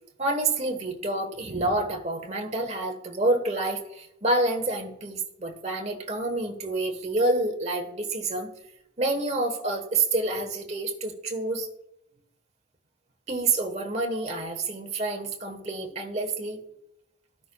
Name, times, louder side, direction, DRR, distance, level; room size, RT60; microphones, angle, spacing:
voice 1, 0.2-8.5 9.0-11.7 13.3-16.6, right 2 dB, 30° right, 3 dB, 1.2 m, -28 dB
14.0 x 6.0 x 2.3 m, 0.80 s
head